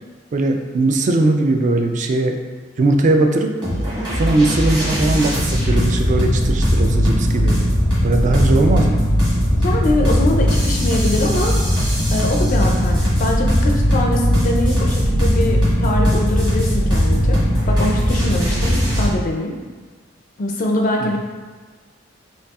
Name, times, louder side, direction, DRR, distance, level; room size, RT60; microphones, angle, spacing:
voice 1, 0.3-2.4 2.8-3.5 4.2-7.6 8.0-9.0 21.0-21.2, right 2 dB, 40° right, 4 dB, 0.3 m, -19 dB
sound 1, 3.6-19.1, equal, 25° right, 1.2 m, -18 dB
voice 2, 9.5-11.5 12.1-17.4 17.7-19.5 20.4-21.2, left 1 dB, 45° left, 1 dB, 0.4 m, -23 dB
5.3 x 2.3 x 2.3 m, 1.4 s
head